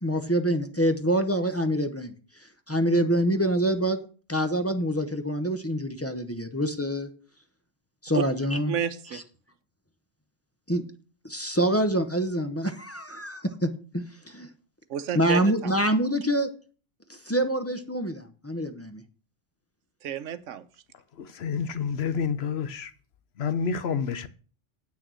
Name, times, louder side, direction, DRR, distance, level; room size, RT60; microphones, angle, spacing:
voice 1, 0.0-2.1 2.7-4.0 4.3-7.1 8.0-8.7 9.1-9.2 10.7-10.8 11.2-14.5 15.1-16.5 17.1-19.0, right 1 dB, 15° left, 0.7 m, -26 dB
voice 2, 8.7-9.2 14.9-15.7 20.0-20.7, right 9 dB, 80° right, 1.1 m, -31 dB
voice 3, 21.2-22.9 23.4-24.3, left 6 dB, 60° left, 0.9 m, -29 dB
8.5 x 6.4 x 6.2 m
omnidirectional pair, 1.3 m